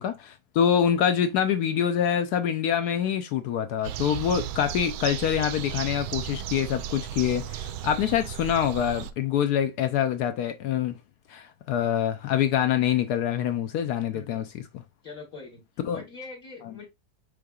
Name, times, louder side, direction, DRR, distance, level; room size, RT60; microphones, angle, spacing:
voice 1, 0.0-11.0 11.3-14.8 15.8-16.0, left 9 dB, 75° left, 0.9 m, -25 dB
sound 1, 3.8-9.1, right 10 dB, 90° right, 1.4 m, -35 dB
voice 2, 14.1-14.4 15.0-16.9, left 4 dB, 50° left, 1.5 m, -43 dB
5.0 x 4.7 x 2.3 m
omnidirectional pair, 2.1 m